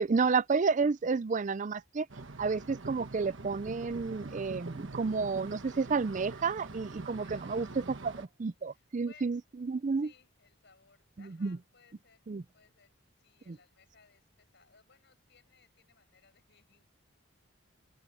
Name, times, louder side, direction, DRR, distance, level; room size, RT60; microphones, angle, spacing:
voice 1, 0.0-2.1 2.4-10.1 11.4-11.6 12.3-12.4 13.5-13.6, right 4 dB, 35° right, 0.4 m, -31 dB
sound 1, 2.1-8.3, right 3 dB, 60° right, 1.3 m, -44 dB
voice 2, 7.2-8.0 8.6-9.4 9.9-12.3 12.5-16.9, left 5 dB, 55° left, 5.7 m, -63 dB
open air
head